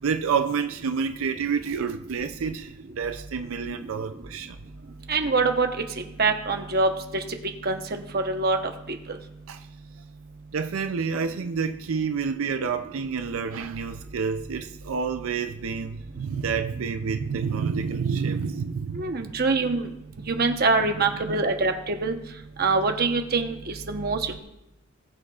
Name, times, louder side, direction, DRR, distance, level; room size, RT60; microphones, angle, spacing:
voice 1, 0.0-4.6 9.5-9.7 10.5-19.3 20.9-21.4, right 6 dB, 90° right, 0.5 m, -29 dB
voice 2, 5.1-5.7 6.2-7.2 7.6-8.6 9.1-9.2 18.9-19.9 20.3-22.2 22.6-24.4, right 3 dB, 50° right, 1.0 m, -24 dB
19.5 x 7.1 x 2.4 m
head